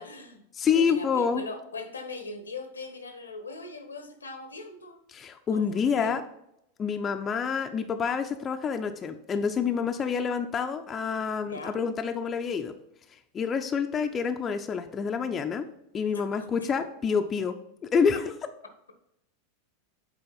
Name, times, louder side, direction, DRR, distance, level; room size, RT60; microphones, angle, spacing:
voice 1, 0.0-0.4 0.7-5.0 5.5-6.2 11.5-11.8 16.1-16.7 17.0-17.1, left 3 dB, 85° left, 8 dB, 1.0 m, -40 dB
voice 2, 0.6-1.4 5.1-6.2 6.8-12.7 13.3-15.7 15.9-17.5 17.9-18.3, left 6 dB, 25° left, 6 dB, 0.6 m, -27 dB
7.8 x 4.2 x 3.9 m, 0.79 s
figure-of-eight pair, 90°, 0 cm